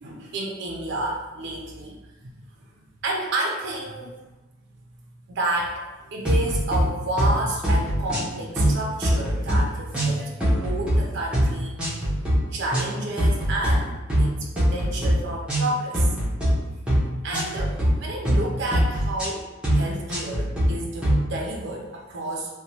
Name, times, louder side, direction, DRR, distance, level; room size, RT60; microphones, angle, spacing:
voice 1, 0.0-2.0 2.2-2.3 3.0-4.1 5.3-5.8 6.1-10.3 10.6-12.1 12.5-16.1 17.2-19.5 19.7-22.5, right 2 dB, 55° right, -1 dB, 0.4 m, -30 dB
sound 1, 6.2-6.8 7.2-7.4 7.6-8.3 8.6-9.6 9.9-11.0 11.3-11.5 11.8-12.4 12.7-12.9 13.2-13.7 14.1-14.3 14.6-15.1 15.5-15.7 15.9-16.5 16.9-17.1 17.3-17.9 18.2-18.4 18.7-19.3 19.6-19.8 20.1-20.7 21.0-21.2, equal, 5° right, 0.6 m, -22 dB
2.9 x 2.1 x 2.7 m, 1.1 s
head